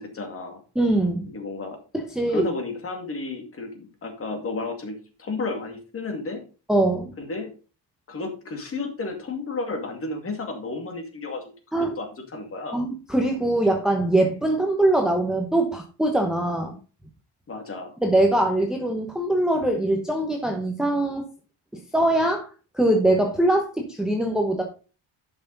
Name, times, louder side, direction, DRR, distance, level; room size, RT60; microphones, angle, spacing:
voice 1, 0.0-0.6 1.3-1.8 2.3-6.4 7.2-7.5 8.1-11.5 11.8-12.8 17.5-18.0, left 3 dB, 30° left, 4 dB, 2.2 m, -32 dB
voice 2, 0.7-1.3 1.9-2.5 6.7-7.1 11.7-11.9 12.7-16.8 18.0-21.2 21.7-22.5 22.7-24.6, right 1 dB, ahead, 2 dB, 0.9 m, -22 dB
11.0 x 5.9 x 4.0 m, 0.34 s
cardioid pair, 180°, 44 cm